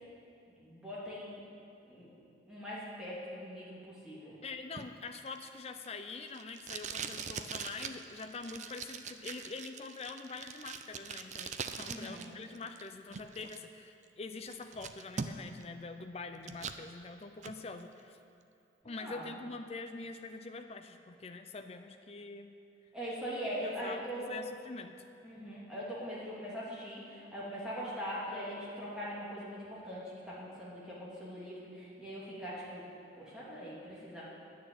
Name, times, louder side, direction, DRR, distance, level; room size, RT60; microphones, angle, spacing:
voice 1, 0.6-1.4 1.9-4.4 11.9-12.3 18.8-19.2 22.9-24.5 25.2-32.9 33.1-34.2, equal, 5° right, -9 dB, 2.9 m, -41 dB
voice 2, 4.4-18.2 18.8-22.6 23.6-25.1, left 3 dB, 35° left, 6 dB, 0.5 m, -45 dB
Packing tape duct tape, 4.8-12.3 12.5-13.6 14.0-14.1 14.5-15.6 16.0-16.8 17.2-17.6, right 6 dB, 40° right, 0.5 m, -42 dB
10.0 x 6.6 x 9.1 m, 2.6 s
head